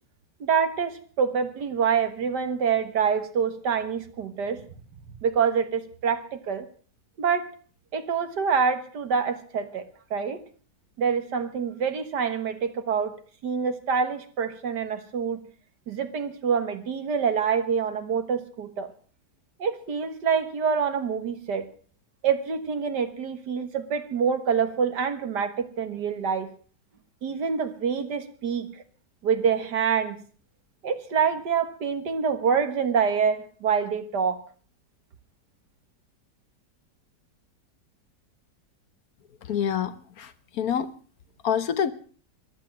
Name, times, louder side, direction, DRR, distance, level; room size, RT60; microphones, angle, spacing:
voice 1, 0.4-4.6 5.2-6.7 7.2-7.5 7.9-9.9 10.1-10.4 11.0-13.1 13.4-15.4 15.9-18.9 19.6-21.7 22.2-26.5 27.2-28.8 29.2-30.2 30.8-34.5, right 6 dB, 75° right, 9 dB, 2.1 m, -26 dB
voice 2, 39.5-40.9 41.4-41.9, left 8 dB, 60° left, 13 dB, 1.3 m, -27 dB
14.5 x 11.5 x 7.3 m, 0.43 s
omnidirectional pair, 1.9 m